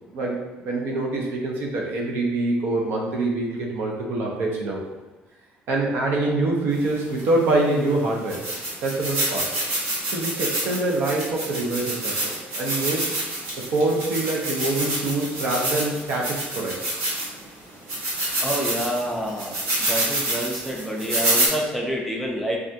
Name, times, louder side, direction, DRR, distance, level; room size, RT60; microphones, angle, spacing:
voice 1, 0.1-4.8 5.7-8.4 8.8-9.5 10.1-13.2 13.6-17.0, right 2 dB, 65° right, -2 dB, 0.6 m, -25 dB
sound 1, 7.2-7.3 7.9-8.0 8.3-17.4 17.9-21.5, right 1 dB, 80° right, 1.1 m, -27 dB
voice 2, 18.4-19.6 19.9-22.6, equal, ahead, -2 dB, 0.5 m, -27 dB
3.3 x 2.4 x 2.7 m, 1.1 s
cardioid pair, 165°, 4 cm